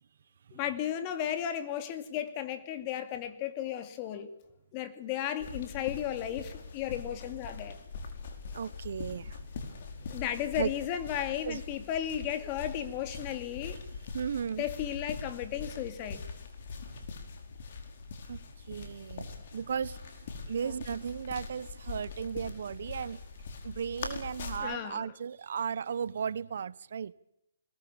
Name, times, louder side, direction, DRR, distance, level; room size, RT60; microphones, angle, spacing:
voice 1, 0.5-4.3 4.7-7.8 10.1-13.8 14.6-16.2 20.6-20.7 24.6-25.1, left 10 dB, 30° left, 2.5 m, -34 dB
sound 1, 5.4-24.6, left 4 dB, 55° left, 4.8 m, -42 dB
voice 2, 8.5-10.1 10.6-10.7 11.4-11.6 14.1-14.6 16.9-17.0 18.3-23.2 23.6-27.1, right 7 dB, 65° right, 1.0 m, -36 dB
22.0 x 19.5 x 8.7 m
hypercardioid pair, 150°, 0 cm